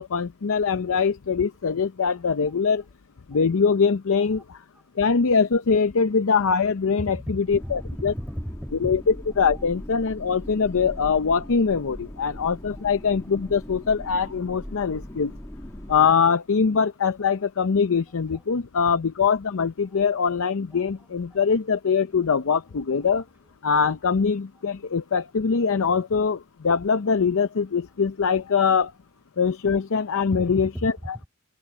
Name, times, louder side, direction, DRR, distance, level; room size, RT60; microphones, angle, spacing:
voice 1, 0.0-2.8 3.3-4.4 5.0-8.1 8.8-9.0 9.4-15.3 15.9-23.2 23.6-26.4 26.6-28.9 29.4-30.9, left 5 dB, 65° left, 0.6 m, -23 dB
voice 2, 4.1-4.4 7.0-9.0 9.4-9.7 12.8-12.9 13.4-13.5 17.2-17.3 17.9-18.5 19.9-20.4 20.7-21.1 23.2-23.3 30.3-31.3, equal, 5° right, 5.6 m, -37 dB
sound 1, 7.5-16.1, equal, 15° left, 1.2 m, -40 dB
open air
head